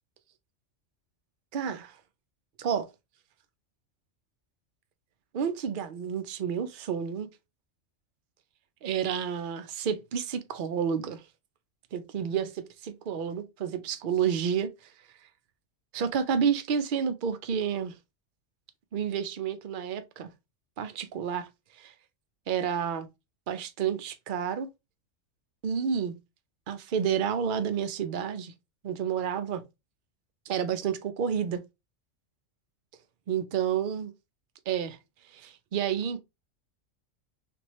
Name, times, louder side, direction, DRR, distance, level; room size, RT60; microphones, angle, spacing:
voice 1, 1.5-2.0 2.6-2.9 5.3-7.3 8.8-11.2 11.9-14.7 15.9-18.0 18.9-20.3 20.8-21.5 21.8-21.9 22.5-23.1 23.5-24.7 25.6-26.2 26.7-28.5 28.8-29.6 30.5-31.6 33.3-34.1 34.7-35.0 35.3-36.2, right 7 dB, 55° right, 0.6 m, -30 dB
3.4 x 3.1 x 3.0 m
omnidirectional pair, 1.3 m